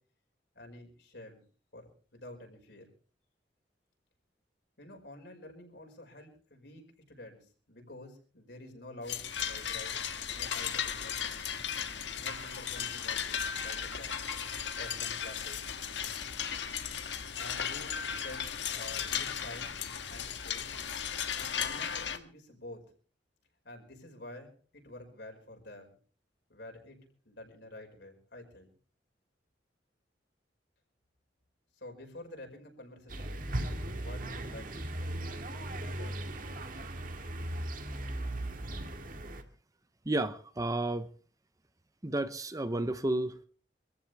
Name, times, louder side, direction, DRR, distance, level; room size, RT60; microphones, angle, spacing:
voice 1, 0.6-1.4 1.7-2.9 4.8-9.9 10.2-14.2 14.7-15.6 17.4-19.8 20.1-20.7 21.3-22.8 23.6-26.0 26.5-28.7 31.7-33.3 34.0-34.9 36.0-36.2, left 1 dB, 65° left, 5.3 m, -49 dB
sound 1, 9.1-22.2, left 8 dB, 90° left, 1.5 m, -36 dB
sound 2, 33.1-39.4, right 1 dB, 50° right, 1.8 m, -37 dB
voice 2, 40.1-41.1 42.0-43.5, right 1 dB, 20° right, 0.7 m, -32 dB
25.5 x 14.5 x 3.4 m
head